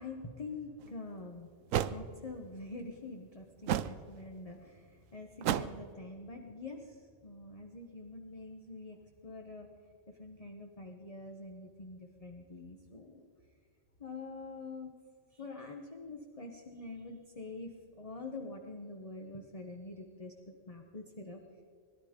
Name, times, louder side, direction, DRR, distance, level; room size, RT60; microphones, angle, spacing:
voice 1, 0.0-1.5 1.9-9.7 10.1-13.3 14.0-14.9 15.3-21.4, left 3 dB, 30° left, 3 dB, 1.0 m, -46 dB
sound 1, 0.8-0.9 1.7-2.0 3.7-4.0 5.4-5.8, right 11 dB, 80° right, 1.0 m, -31 dB
20.5 x 12.0 x 5.1 m, 2.1 s
omnidirectional pair, 1.4 m